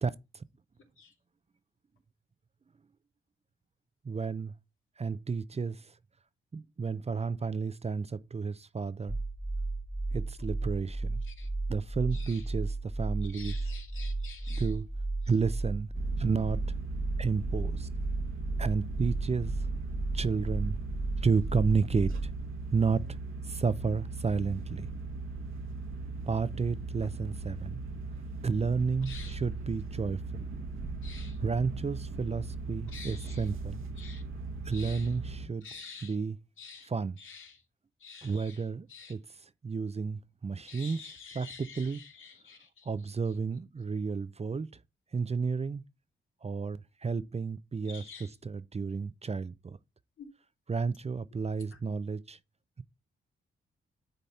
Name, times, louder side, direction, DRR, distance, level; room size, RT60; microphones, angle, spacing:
voice 1, 0.0-0.4 4.0-4.5 5.0-5.9 6.5-9.2 10.1-11.2 11.7-13.5 14.5-14.8 15.3-15.9 16.2-16.8 17.2-17.9 18.6-19.7 20.1-20.8 21.2-22.3 22.7-23.2 23.5-24.9 26.3-27.8 28.4-30.4 31.4-33.8 34.6-35.6 36.0-36.4 36.9-37.2 38.2-39.2 39.6-41.0 41.3-42.0 42.9-44.7 45.1-45.8 46.4-48.0 48.4-49.8 50.7-52.4, right 5 dB, 30° right, 0.6 m, -31 dB
sound 1, 9.1-22.4, right 2 dB, 20° left, 1.9 m, -34 dB
voice 2, 12.1-12.5 13.2-14.7 15.2-15.3 29.0-29.4 31.0-31.4 32.9-33.5 34.0-34.2 34.7-35.1 35.6-36.2 36.6-36.9 37.2-37.6 38.0-38.6 38.9-39.1 40.6-42.9 47.8-48.3 50.2-50.3 51.7-51.8, left 5 dB, 70° left, 2.7 m, -48 dB
sound 2, 15.9-35.5, right 3 dB, 75° right, 1.5 m, -39 dB
10.0 x 4.1 x 4.2 m
cardioid pair, 65°, 21 cm